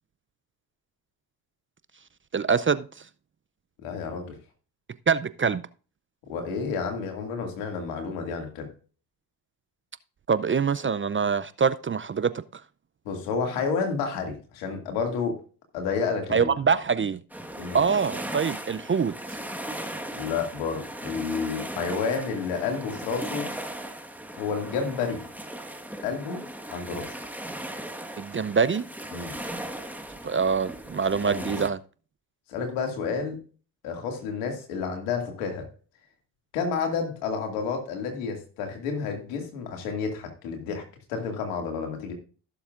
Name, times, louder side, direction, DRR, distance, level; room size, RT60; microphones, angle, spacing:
voice 1, 2.3-2.9 5.1-5.6 10.3-12.6 16.3-17.2 17.7-19.1 28.2-28.8 30.2-31.8, right 6 dB, 25° right, 0.5 m, -24 dB
voice 2, 3.8-4.3 6.3-8.7 13.0-15.4 15.7-16.5 17.6-17.8 20.1-23.5 24.3-25.2 26.0-27.1 29.1-29.3 31.2-31.6 32.5-33.4 33.8-35.6 36.5-40.8 41.1-42.1, left 5 dB, 85° left, 2.4 m, -30 dB
sound 1, 17.3-31.7, right 1 dB, 5° right, 1.5 m, -37 dB
16.0 x 7.0 x 2.5 m
hypercardioid pair, 50°, 48 cm